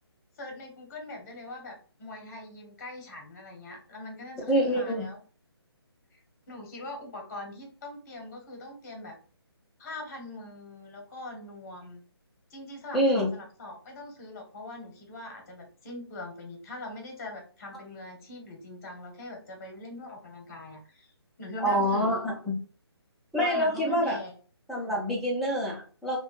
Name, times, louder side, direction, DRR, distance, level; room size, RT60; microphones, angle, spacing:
voice 1, 0.4-5.2 6.1-6.2 6.5-9.1 9.8-12.0 12.5-21.1 21.4-22.2 23.4-24.3, left 2 dB, 35° left, 2 dB, 0.9 m, -42 dB
voice 2, 4.5-5.0 12.9-13.3 21.6-22.6 23.3-24.2 24.7-26.2, equal, ahead, -6 dB, 0.5 m, -26 dB
2.7 x 2.2 x 2.9 m, 0.40 s
figure-of-eight pair, 150°, 14 cm